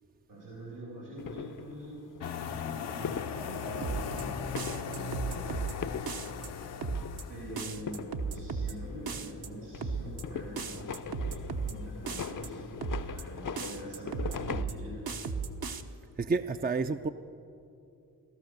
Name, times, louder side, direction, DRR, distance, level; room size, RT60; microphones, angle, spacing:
voice 1, 0.3-2.0 2.7-4.4 4.8-5.4 7.3-12.8 13.0-15.1, right 1 dB, 80° right, -4 dB, 4.1 m, -44 dB
sound 1, 1.2-14.7, left 7 dB, 50° left, 0.7 m, -42 dB
sound 2, 2.2-7.7, left 6 dB, 75° left, 0.9 m, -38 dB
sound 3, 3.8-4.2 4.6-5.7 6.1-6.5 6.8-7.2 7.6-8.7 9.1-9.5 9.8-10.2 10.6-11.7 12.1-12.5 12.8-13.2 13.6-14.7 15.1-15.8, right 5 dB, 60° right, 1.1 m, -35 dB
voice 2, 16.2-17.1, right 4 dB, 25° right, 8 dB, 0.5 m, -29 dB
17.0 x 13.0 x 6.6 m, 2.7 s
supercardioid pair, 40°, 41 cm